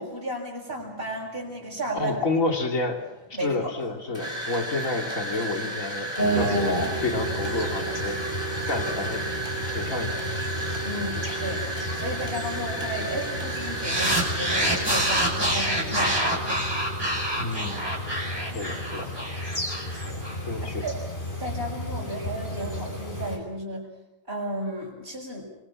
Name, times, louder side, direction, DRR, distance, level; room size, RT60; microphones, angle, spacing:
voice 1, 0.0-2.2 3.3-3.8 10.8-11.6 12.0-16.6 18.5-18.7 19.9-21.0 21.4-23.9 24.3-25.5, right 1 dB, 40° right, -6 dB, 6.5 m, -34 dB
sound 1, 0.8-1.1 1.8-2.3 3.1-15.0, right 1 dB, 20° left, 4.5 m, -34 dB
voice 2, 1.9-3.0 3.4-8.2 8.7-9.3 9.7-10.2 17.4-17.9 18.5-19.1 20.4-20.8, left 3 dB, 75° left, 4 dB, 3.4 m, -29 dB
sound 2, 6.2-23.4, equal, 35° left, 5.4 m, -32 dB
sound 3, 13.8-20.3, right 1 dB, 15° right, 5.9 m, -26 dB
25.5 x 24.0 x 7.4 m, 0.92 s
omnidirectional pair, 1.4 m